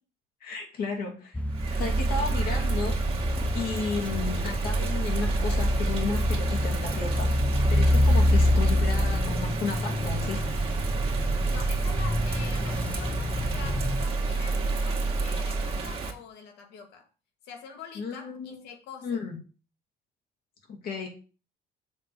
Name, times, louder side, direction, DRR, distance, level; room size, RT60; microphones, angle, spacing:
voice 1, 0.4-1.4 1.8-3.0 3.5-7.3 7.7-10.4 18.0-18.6 19.0-19.4 20.7-21.1, left 4 dB, 60° left, 2.6 m, -33 dB
sound 1, 1.3-14.1, left 1 dB, 10° left, 0.4 m, -27 dB
Bird vocalization bird call bird song / Rain, 1.5-16.1, right 3 dB, 35° right, 1.9 m, -29 dB
voice 2, 8.1-8.5 11.5-17.1 17.4-19.2, left 6 dB, 90° left, 1.8 m, -45 dB
7.3 x 3.8 x 6.4 m
cardioid pair, 110°, 17 cm